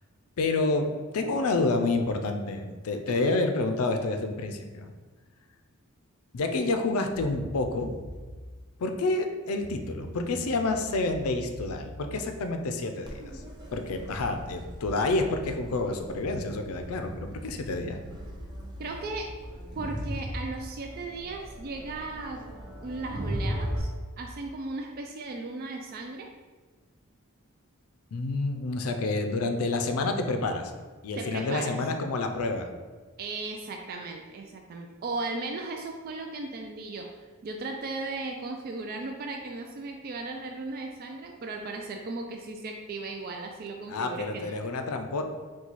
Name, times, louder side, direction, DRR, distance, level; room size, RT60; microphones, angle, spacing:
voice 1, 0.4-4.9 6.3-7.9 8.8-13.1 13.7-18.0 28.1-30.7 31.0-32.7 43.9-45.2, left 3 dB, 75° left, 6 dB, 0.4 m, -28 dB
voice 2, 3.1-3.4 18.8-19.3 19.8-22.4 22.8-23.9 24.2-26.3 31.2-31.8 33.2-37.1 37.4-44.6, right 3 dB, 45° right, 3 dB, 0.3 m, -36 dB
sound 1, 7.1-8.4 9.6-13.3 14.2-15.4 16.2-20.1, equal, 65° right, 1.0 m, -44 dB
Crowd, 13.0-23.8, equal, 20° right, 0.7 m, -38 dB
4.0 x 2.2 x 4.5 m, 1.4 s
head